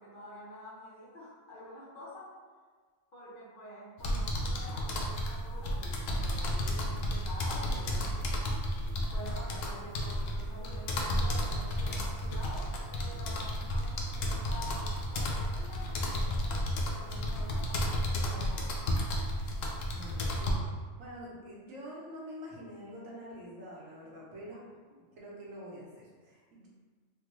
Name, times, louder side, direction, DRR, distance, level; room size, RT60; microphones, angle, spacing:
voice 1, 0.0-2.4 3.1-8.3 9.1-16.5 16.9-18.7, equal, 45° left, -8 dB, 0.8 m, -47 dB
sound 1, 4.0-20.5, equal, 80° left, 0.9 m, -32 dB
voice 2, 19.9-20.6 21.0-24.6 25.0-26.7, equal, 85° right, -5 dB, 1.3 m, -46 dB
3.6 x 2.2 x 3.0 m, 1.5 s
omnidirectional pair, 1.3 m